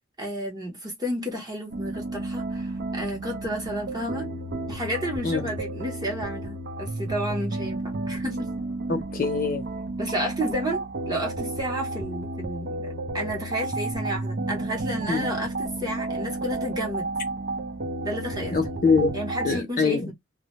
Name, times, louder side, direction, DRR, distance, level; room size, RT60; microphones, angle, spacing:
voice 1, 0.2-4.3 4.7-8.5 10.0-10.8 11.1-17.1 18.0-18.6 19.1-20.1, equal, 20° right, 0.7 m, -31 dB
sound 1, 1.7-19.6, right 2 dB, 55° right, 0.5 m, -32 dB
voice 2, 8.9-9.7 15.1-15.3 18.5-19.1 19.4-20.1, left 4 dB, 45° left, 0.6 m, -24 dB
2.1 x 2.1 x 2.9 m
head